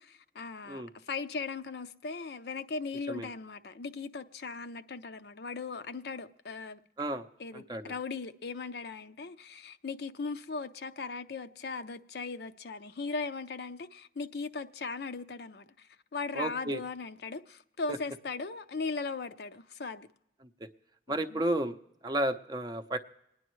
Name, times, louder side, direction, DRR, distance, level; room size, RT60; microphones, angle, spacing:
voice 1, 0.0-6.8 7.4-20.1 21.3-21.4, left 4 dB, 65° left, 0.5 m, -38 dB
voice 2, 7.5-7.9 16.3-16.8 20.6-20.7 21.1-21.8 22.0-23.0, right 1 dB, 25° right, 0.6 m, -32 dB
27.5 x 9.9 x 3.1 m
head